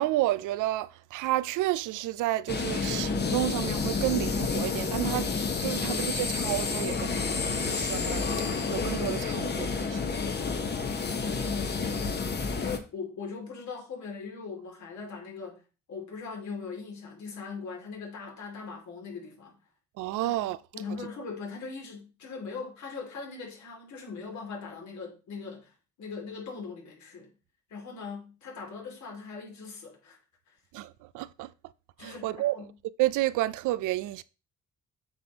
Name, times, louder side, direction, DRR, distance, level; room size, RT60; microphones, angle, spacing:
voice 1, 0.0-5.3 5.6-10.1 20.0-20.6 30.7-31.5 32.0-32.6 33.0-34.2, right 16 dB, 85° right, 0.5 m, -31 dB
sound 1, 2.5-12.8, left 4 dB, 35° left, 1.1 m, -30 dB
voice 2, 10.3-12.3 12.6-15.6 15.9-19.6 20.2-25.7 26.0-27.3 27.7-30.2 30.5-30.6 32.0-32.7, left 5 dB, 70° left, 2.7 m, -40 dB
8.1 x 5.3 x 2.9 m
cardioid pair, 90°, 30 cm